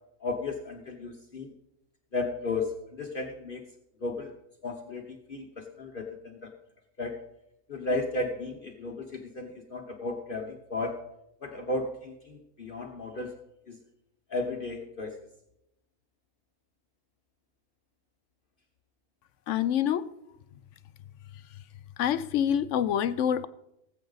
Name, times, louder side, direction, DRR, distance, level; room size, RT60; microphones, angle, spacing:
voice 1, 0.2-1.5 2.1-3.6 4.0-4.3 4.6-6.5 7.0-7.2 7.7-11.0 11.4-13.4 13.7-13.8 14.3-15.2, left 2 dB, 45° left, 2 dB, 1.1 m, -34 dB
voice 2, 19.5-20.1 21.3-21.4 22.0-23.5, left 9 dB, 75° left, 14 dB, 0.9 m, -26 dB
19.0 x 7.9 x 4.0 m, 0.84 s
omnidirectional pair, 1.3 m